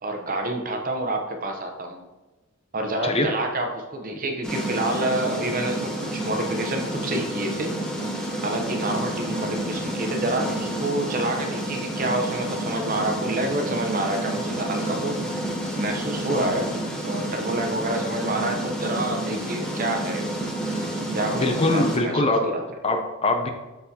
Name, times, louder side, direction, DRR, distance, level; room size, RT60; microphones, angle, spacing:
voice 1, 0.0-2.0 2.7-7.7 8.4-15.2 15.8-16.7 17.0-20.2 21.1-22.7, right 1 dB, 40° right, 3 dB, 0.7 m, -28 dB
voice 2, 3.0-3.3 21.3-22.5 22.8-23.5, left 2 dB, 30° left, 5 dB, 0.5 m, -22 dB
sound 1, 4.4-22.0, right 1 dB, 5° left, 0.8 m, -29 dB
6.0 x 5.6 x 2.8 m, 1.1 s
head